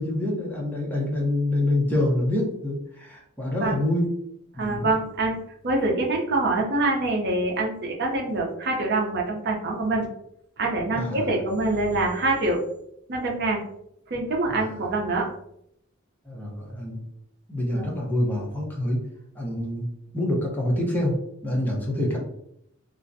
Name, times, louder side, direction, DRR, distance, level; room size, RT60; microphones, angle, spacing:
voice 1, 0.0-4.1 4.6-4.9 10.9-11.4 14.5-14.7 16.2-17.0 17.5-19.0 19.3-19.9 20.1-21.1 21.4-22.2, left 1 dB, 10° left, -3 dB, 0.6 m, -26 dB
voice 2, 4.6-5.4 5.6-10.1 10.6-12.6 13.1-13.6 14.1-15.3 17.7-18.0, right 2 dB, 55° right, 0 dB, 0.6 m, -25 dB
2.5 x 2.1 x 2.5 m, 0.75 s
head